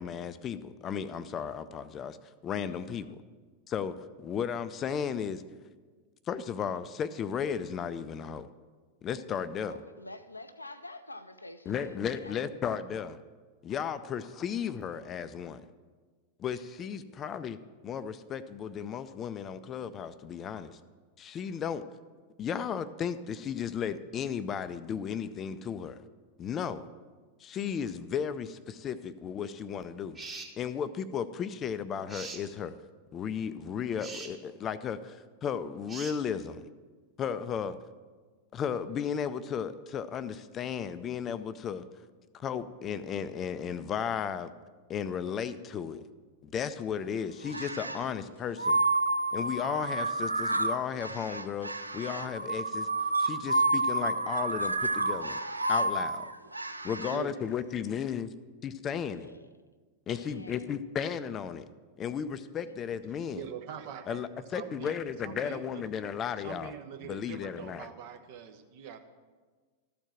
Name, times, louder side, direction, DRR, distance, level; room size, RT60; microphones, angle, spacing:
voice 1, 0.0-2.2 2.4-3.1 3.7-5.4 6.3-8.5 9.0-9.7 11.7-13.2 13.6-15.6 16.4-17.6 17.8-20.8 21.2-21.8 22.4-26.0 26.4-26.8 27.4-30.2 30.6-32.7 33.1-36.7 37.2-37.8 38.5-41.8 42.3-44.5 44.9-46.0 46.4-48.8 49.3-52.9 53.2-55.4 55.7-56.3 56.8-58.3 58.6-59.3 60.1-61.7 62.0-63.4 64.1-66.7 67.0-67.9, left 7 dB, 30° left, 13 dB, 0.4 m, -34 dB
voice 2, 2.6-3.1 9.7-12.4 17.0-17.2 59.1-59.5 60.1-61.0, left 2 dB, 85° left, 10 dB, 0.5 m, -48 dB
sound 1, 30.1-30.5 32.1-32.4 34.0-34.3 35.9-36.2, right 3 dB, 15° right, 1.3 m, -41 dB
sound 2, 47.5-48.1 48.6-57.2, right 2 dB, 85° right, 0.4 m, -30 dB
voice 3, 57.0-57.4 63.3-65.0 65.2-65.8 66.4-69.1, right 8 dB, 50° right, 5 dB, 0.9 m, -43 dB
13.5 x 4.5 x 7.4 m, 1.4 s
figure-of-eight pair, 90°, 0 cm